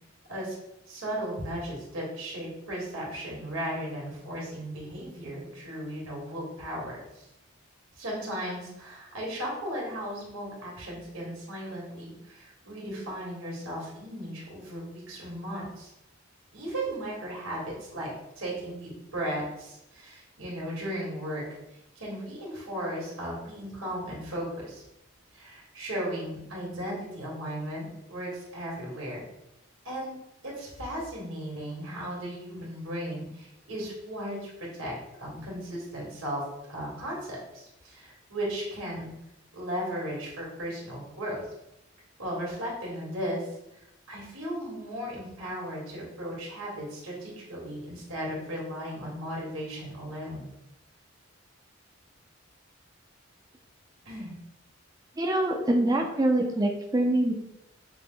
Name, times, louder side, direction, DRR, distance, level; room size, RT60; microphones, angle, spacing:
voice 1, 0.9-7.3 7.9-15.9 16.5-18.1 18.3-21.4 21.7-24.8 25.3-29.2 29.8-30.2 30.4-34.9 35.2-36.4 36.7-39.1 39.5-41.4 42.2-43.5 44.1-50.5 54.0-54.3, equal, 90° right, -4 dB, 1.6 m, -36 dB
voice 2, 55.2-57.3, right 1 dB, 15° right, 1 dB, 0.4 m, -24 dB
5.8 x 2.1 x 3.8 m, 0.86 s
head